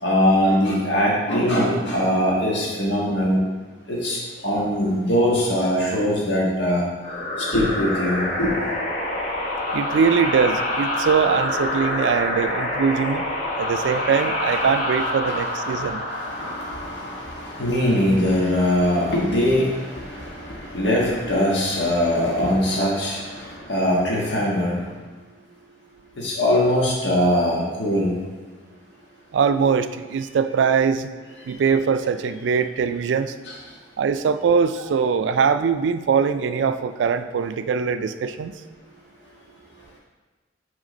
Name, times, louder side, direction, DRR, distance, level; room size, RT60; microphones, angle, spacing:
voice 1, 0.0-3.4 3.9-6.8 7.4-8.5 15.7-24.8 26.2-28.2 33.5-33.6, left 1 dB, 75° left, -5 dB, 1.5 m, -22 dB
sound 1, 7.0-18.4, left 1 dB, 45° left, 1.0 m, -27 dB
voice 2, 9.7-13.2 13.6-16.0 29.3-31.1 31.5-33.3 34.0-38.5, right 6 dB, 80° right, 11 dB, 0.3 m, -22 dB
6.4 x 3.7 x 5.1 m, 1.3 s
head